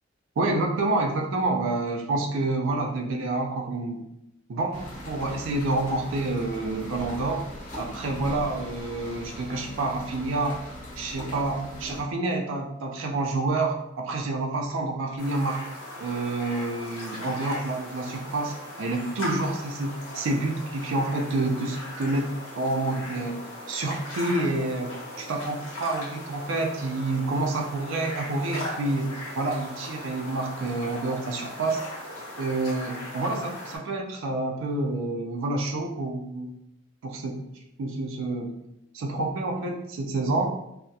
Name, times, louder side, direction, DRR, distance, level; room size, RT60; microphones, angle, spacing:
voice 1, 0.4-4.0 4.5-7.4 7.8-10.6 11.0-15.7 16.0-31.8 32.4-36.6 37.0-37.4 37.8-38.5 38.9-40.5, right 2 dB, 70° right, 2 dB, 0.4 m, -28 dB
sound 1, 4.7-12.0, left 1 dB, 40° left, 0.8 m, -40 dB
sound 2, 15.2-33.8, left 1 dB, 75° left, 1.0 m, -39 dB
2.7 x 2.0 x 2.2 m, 0.80 s
head